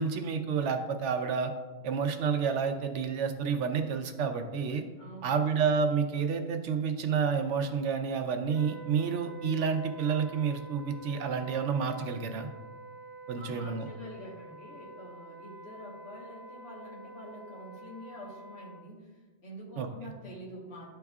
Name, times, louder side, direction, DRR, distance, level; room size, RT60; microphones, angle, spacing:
voice 1, 0.0-1.5 1.8-4.8 5.2-12.5 13.3-13.9 19.8-19.9, right 6 dB, 80° right, 6 dB, 1.0 m, -29 dB
voice 2, 5.0-5.6 13.4-19.1 19.4-20.9, equal, 65° left, -4 dB, 1.6 m, -46 dB
Wind instrument woodwind instrument, 8.5-18.9, right 2 dB, 55° right, 0.8 m, -47 dB
11.5 x 4.5 x 2.4 m, 1.3 s
omnidirectional pair, 1.2 m